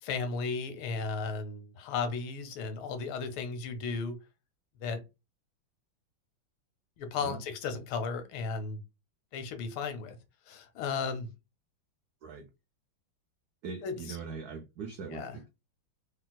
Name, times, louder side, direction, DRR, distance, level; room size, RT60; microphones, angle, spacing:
voice 1, 0.0-4.2 4.8-5.0 7.0-8.8 9.3-10.2 10.5-11.3 13.8-14.2 15.1-15.4, left 4 dB, 80° left, 1.6 m, -35 dB
voice 2, 13.6-15.5, right 5 dB, 90° right, 0.8 m, -41 dB
3.3 x 2.9 x 2.2 m
omnidirectional pair, 2.3 m